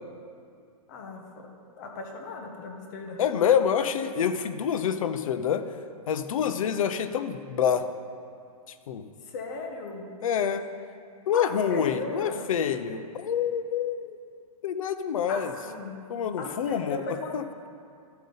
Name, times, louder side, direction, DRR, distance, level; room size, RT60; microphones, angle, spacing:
voice 1, 0.9-1.2 1.8-3.2 9.3-10.1 11.3-12.5 15.3-16.1 16.4-17.3, left 3 dB, 30° left, 2 dB, 0.9 m, -37 dB
voice 2, 3.2-5.7 6.1-7.9 8.9-9.1 10.2-10.6 11.3-14.2 14.6-15.5 16.1-17.0 17.3-17.4, left 8 dB, 65° left, 10 dB, 0.6 m, -26 dB
12.0 x 5.2 x 3.9 m, 2.3 s
hypercardioid pair, 170°, 19 cm